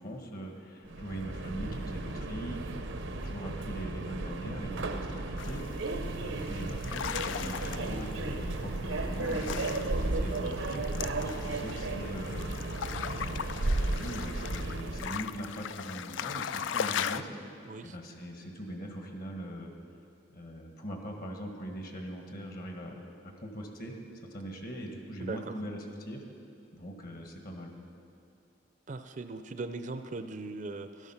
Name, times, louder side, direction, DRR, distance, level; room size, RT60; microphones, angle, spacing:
voice 1, 0.0-10.9 11.2-12.5 13.0-17.3 17.8-19.7 20.3-23.9 24.2-26.2 26.7-27.7, equal, 50° left, 2 dB, 1.6 m, -41 dB
Subway metro underground, 0.8-15.2, right 2 dB, 85° right, 0.8 m, -34 dB
sound 1, 5.4-17.2, left 8 dB, 75° left, 0.3 m, -39 dB
voice 2, 9.9-10.3 17.6-18.0 25.2-25.6 28.9-31.1, right 3 dB, 40° right, 9 dB, 0.5 m, -40 dB
12.5 x 12.0 x 5.8 m, 2.6 s
head